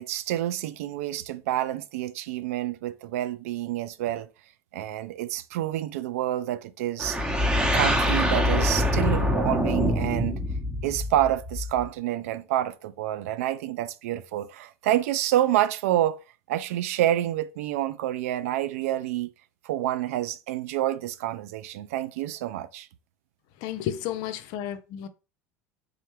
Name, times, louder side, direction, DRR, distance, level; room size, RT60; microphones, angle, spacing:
voice 1, 0.0-4.3 4.7-7.2 7.6-10.4 10.8-16.2 16.5-19.3 19.6-22.9, right 13 dB, 70° right, 0.4 m, -28 dB
sound 1, 7.0-11.8, left 1 dB, 10° right, 0.9 m, -25 dB
voice 2, 23.6-25.1, left 11 dB, 60° left, 0.5 m, -32 dB
3.7 x 3.2 x 3.1 m
hypercardioid pair, 75°, 8 cm